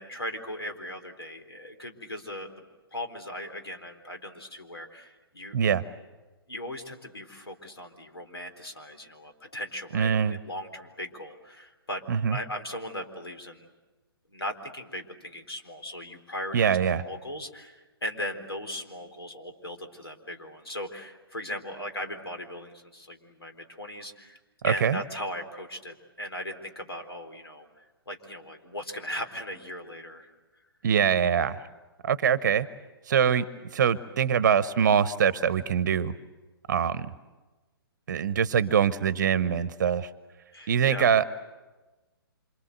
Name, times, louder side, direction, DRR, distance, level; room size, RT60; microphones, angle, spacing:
voice 1, 0.0-2.5 2.9-5.6 6.5-12.0 12.3-13.7 14.3-24.4 24.6-30.3 40.5-41.1, left 1 dB, 80° left, 6 dB, 4.0 m, -38 dB
voice 2, 5.5-5.8 9.9-10.4 12.1-12.4 16.5-17.0 24.6-25.0 30.8-31.6 32.0-32.7 33.1-33.5 33.7-36.1 36.7-37.1 38.1-40.1 40.7-41.2, right 7 dB, 50° right, 16 dB, 1.0 m, -23 dB
27.0 x 26.0 x 8.0 m, 1.2 s
figure-of-eight pair, 125°, 13 cm